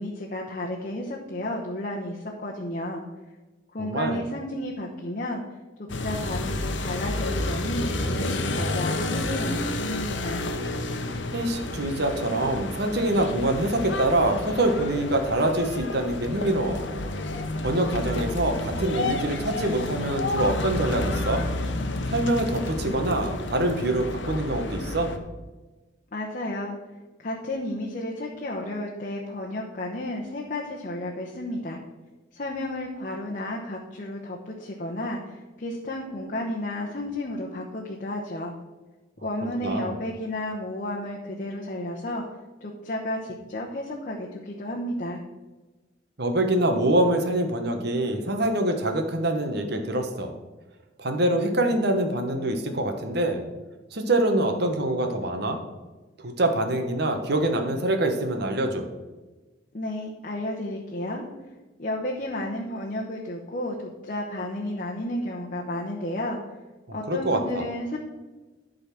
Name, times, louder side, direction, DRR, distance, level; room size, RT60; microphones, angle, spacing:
voice 1, 0.0-3.0 3.7-5.4 5.8-10.5 26.1-26.8 27.2-31.8 32.3-38.5 39.2-42.2 42.6-45.2 59.7-61.2 61.8-66.4 66.9-68.0, left 1 dB, 45° left, -1 dB, 1.0 m, -32 dB
voice 2, 3.8-4.2 11.3-16.8 17.6-21.4 22.1-25.1 39.6-40.0 46.2-50.3 51.0-53.4 53.9-55.6 56.2-58.9 66.9-67.6, right 1 dB, 55° right, 5 dB, 1.1 m, -25 dB
sound 1, 5.9-25.2, left 2 dB, 70° left, 0.9 m, -30 dB
11.5 x 4.0 x 5.9 m, 1.2 s
head